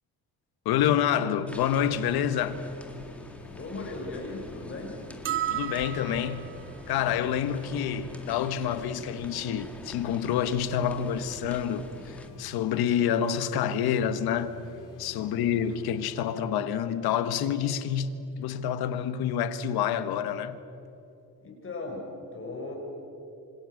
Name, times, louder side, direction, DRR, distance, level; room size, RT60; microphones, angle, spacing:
voice 1, 0.6-2.6 5.5-6.5 6.9-14.6 15.0-20.6, left 9 dB, 85° left, 1.5 m, -28 dB
sound 1, 1.5-12.3, left 1 dB, 5° left, 2.1 m, -46 dB
sound 2, 1.7-16.3, left 5 dB, 60° left, 2.4 m, -51 dB
voice 2, 3.5-5.1 15.3-15.7 21.4-22.7, left 2 dB, 35° left, 6.5 m, -38 dB
sound 3, 5.2-6.6, right 12 dB, 35° right, 0.6 m, -32 dB
29.5 x 25.5 x 6.5 m
cardioid pair, 150°, 37 cm